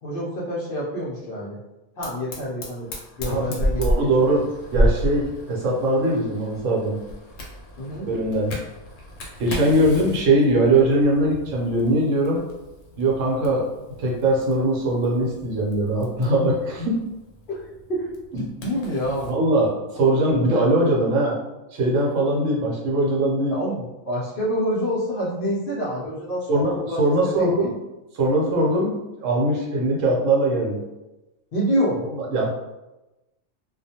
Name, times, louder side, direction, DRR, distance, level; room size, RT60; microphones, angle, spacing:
voice 1, 0.0-1.6 2.0-2.9 3.2-4.5 7.8-8.1 17.5-19.5 20.5-20.6 21.2-21.3 23.5-27.0 27.3-27.5 31.5-32.0, equal, 55° left, -6 dB, 0.6 m, -27 dB
Fire, 2.0-19.4, equal, 75° left, 1.0 m, -32 dB
voice 2, 3.2-4.4 4.7-7.0 8.1-8.5 9.4-12.4 13.0-13.7 14.0-17.0 18.3-18.4 19.3-21.3 21.7-23.6 26.5-27.7 28.1-30.8 32.1-32.5, right 1 dB, 70° right, -2 dB, 1.0 m, -21 dB
2.4 x 2.1 x 2.7 m, 1.0 s
omnidirectional pair, 1.4 m